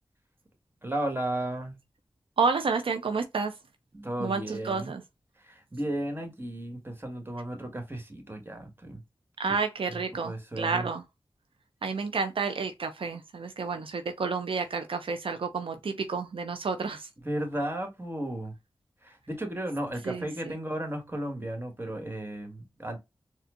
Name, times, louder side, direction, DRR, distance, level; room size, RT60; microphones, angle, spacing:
voice 1, 0.8-1.7 3.9-4.9 5.4-9.0 9.9-10.0 10.2-10.9 17.2-18.5 19.0-23.0, right 1 dB, 25° right, 1.7 m, -34 dB
voice 2, 2.4-3.5 4.2-5.0 9.4-11.0 11.8-17.1 20.0-20.6, right 4 dB, 80° right, 0.5 m, -30 dB
4.3 x 2.4 x 2.5 m
cardioid pair, 45°, 9 cm